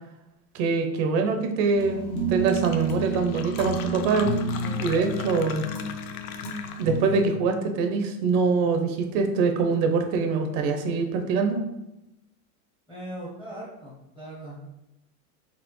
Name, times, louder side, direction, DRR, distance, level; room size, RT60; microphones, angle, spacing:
voice 1, 0.5-4.3 4.8-5.6 6.8-11.6, right 4 dB, 45° right, 5 dB, 0.6 m, -24 dB
sound 1, 1.7-7.3, right 3 dB, 40° left, 1.0 m, -31 dB
Fill (with liquid), 2.0-2.1 2.3-7.1, left 8 dB, 70° left, 0.6 m, -39 dB
voice 2, 12.9-14.7, right 1 dB, 10° left, -6 dB, 0.8 m, -39 dB
4.2 x 2.9 x 3.0 m, 0.91 s
supercardioid pair, 140°, 43 cm